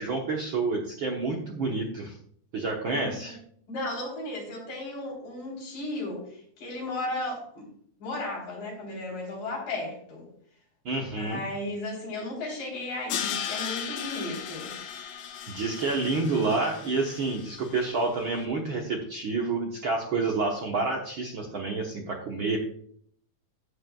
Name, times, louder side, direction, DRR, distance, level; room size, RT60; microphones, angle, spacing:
voice 1, 0.0-2.1 2.5-3.4 10.8-11.4 15.5-22.6, right 3 dB, 65° right, 0 dB, 1.3 m, -29 dB
voice 2, 2.8-3.3 3.7-7.7 8.0-10.3 11.2-14.8, left 2 dB, 85° left, -2 dB, 5.3 m, -35 dB
Crash cymbal, 13.1-18.1, left 8 dB, 65° left, 1.8 m, -36 dB
13.0 x 8.3 x 2.3 m, 0.62 s
omnidirectional pair, 3.7 m